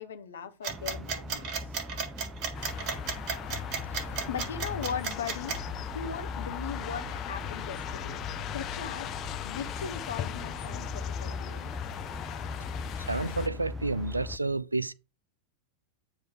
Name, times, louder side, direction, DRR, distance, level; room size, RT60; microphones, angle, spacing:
voice 1, 0.0-1.7 4.3-5.6 5.9-8.2 8.5-9.1 9.4-11.7, left 7 dB, 65° left, 1.0 m, -38 dB
sound 1, 0.6-5.6, right 6 dB, 40° right, 1.5 m, -34 dB
sound 2, 0.7-14.4, left 2 dB, 15° right, 0.6 m, -41 dB
sound 3, 2.5-13.5, left 11 dB, 35° left, 0.7 m, -38 dB
voice 2, 13.0-14.9, right 3 dB, 80° right, 0.4 m, -30 dB
9.0 x 3.1 x 6.0 m
figure-of-eight pair, 90°, 0 cm